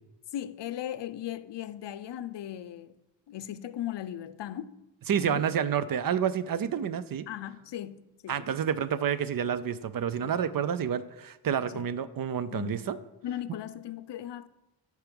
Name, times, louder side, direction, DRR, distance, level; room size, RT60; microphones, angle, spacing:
voice 1, 0.3-2.9 3.3-4.8 5.2-5.4 7.3-8.5 10.2-10.3 11.6-11.8 12.5-12.9 13.2-14.5, left 11 dB, 70° left, 0.6 m, -38 dB
voice 2, 5.1-7.3 8.3-13.0, right 8 dB, 50° right, 0.5 m, -29 dB
10.5 x 4.7 x 5.2 m
wide cardioid pair, 115°, 45 cm